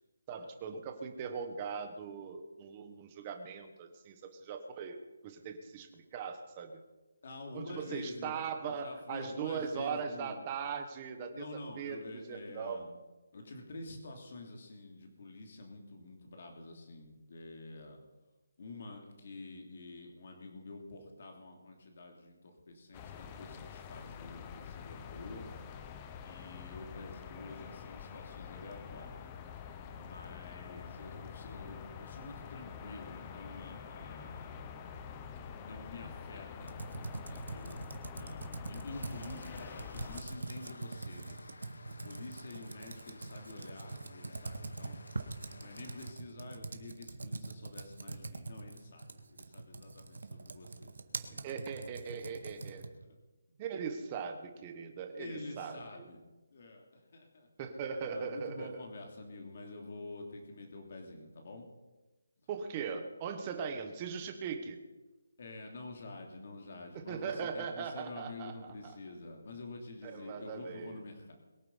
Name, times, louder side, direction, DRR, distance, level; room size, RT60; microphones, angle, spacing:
voice 1, 0.3-5.0 5.2-6.8 7.5-11.4 11.8-12.0 12.3-12.8 51.4-52.9 53.6-56.1 57.6-58.8 62.5-64.8 66.9-68.5 68.8-69.0 70.0-71.0, right 6 dB, 15° right, 5 dB, 1.2 m, -40 dB
voice 2, 7.2-10.4 11.3-12.9 13.3-18.0 18.6-25.4 26.2-29.3 29.9-34.7 35.5-41.4 41.9-45.0 45.5-51.6 53.0-53.2 53.5-53.6 55.2-56.2 56.5-57.5 58.1-61.7 65.4-71.3, left 2 dB, 40° left, 3 dB, 2.9 m, -48 dB
sound 1, 22.9-40.2, left 7 dB, 15° left, 0.7 m, -47 dB
Computer keyboard, 36.6-53.0, right 3 dB, 75° right, 1.8 m, -44 dB
sound 2, 38.9-46.1, left 3 dB, 65° left, 1.8 m, -54 dB
22.5 x 9.0 x 5.6 m, 1.1 s
hypercardioid pair, 180°, 0 cm